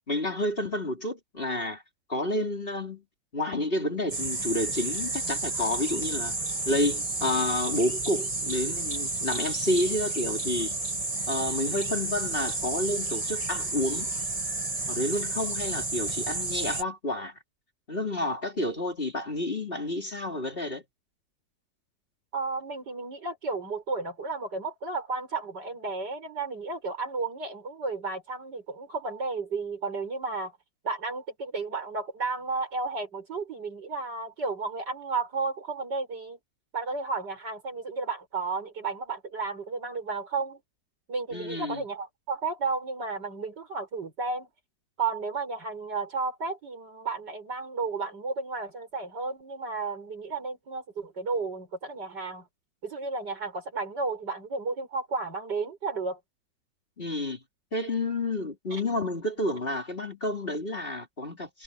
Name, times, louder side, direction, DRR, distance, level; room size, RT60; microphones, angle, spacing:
voice 1, 0.1-1.8 2.1-3.0 3.3-6.3 6.7-10.7 11.3-14.1 14.9-17.4 17.9-20.8 41.3-41.8 57.0-57.4 57.7-61.6, left 1 dB, 30° left, 3.6 m, -30 dB
sound 1, 4.1-16.8, right 2 dB, 20° right, 1.7 m, -31 dB
voice 2, 22.3-30.5 30.8-36.4 36.7-40.6 41.1-44.5 45.0-52.5 52.8-56.2 58.7-58.8, right 4 dB, 65° right, 6.3 m, -33 dB
omnidirectional pair, 2.0 m